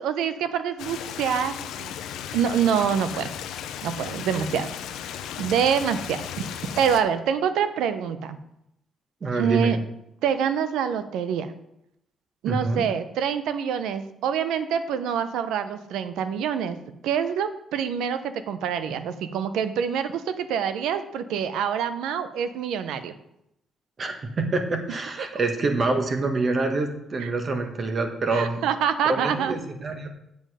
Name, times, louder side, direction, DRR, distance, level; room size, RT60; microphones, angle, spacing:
voice 1, 0.0-1.9 2.3-3.3 3.8-4.7 5.4-8.4 9.3-9.8 10.2-11.5 12.4-16.8 17.0-23.1 25.2-25.4 27.2-27.3 28.3-29.5, right 8 dB, 85° right, 11 dB, 0.8 m, -26 dB
Stream, 0.8-7.0, left 9 dB, 85° left, 0.7 m, -35 dB
voice 2, 9.2-9.7 12.4-12.9 24.0-28.6 29.0-30.1, right 3 dB, 40° right, 5 dB, 1.6 m, -26 dB
7.8 x 7.3 x 5.0 m, 0.80 s
cardioid pair, 90°, 0 cm